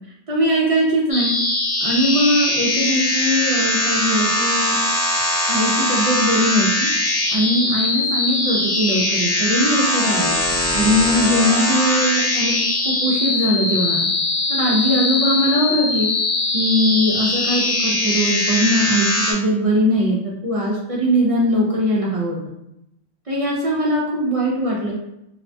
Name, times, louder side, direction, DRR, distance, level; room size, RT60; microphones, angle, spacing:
voice 1, 0.3-1.3 1.8-4.8 5.5-6.9 7.3-10.4 10.7-12.6 12.8-14.1 14.5-16.1 16.5-22.4 23.3-25.0, equal, 55° right, -4 dB, 0.4 m, -20 dB
sound 1, 1.1-19.3, left 2 dB, 45° left, 0.6 m, -21 dB
2.7 x 2.1 x 2.5 m, 0.82 s
omnidirectional pair, 1.1 m